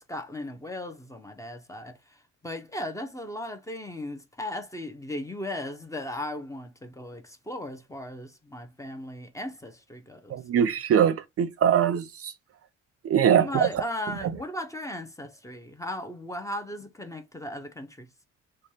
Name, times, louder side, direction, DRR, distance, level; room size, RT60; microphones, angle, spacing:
voice 1, 0.0-10.4 13.3-18.1, left 1 dB, 10° left, 0.7 m, -37 dB
voice 2, 10.3-12.3 13.0-13.7, right 9 dB, 50° right, 0.5 m, -22 dB
3.2 x 2.3 x 4.1 m
cardioid pair, 90°, 30 cm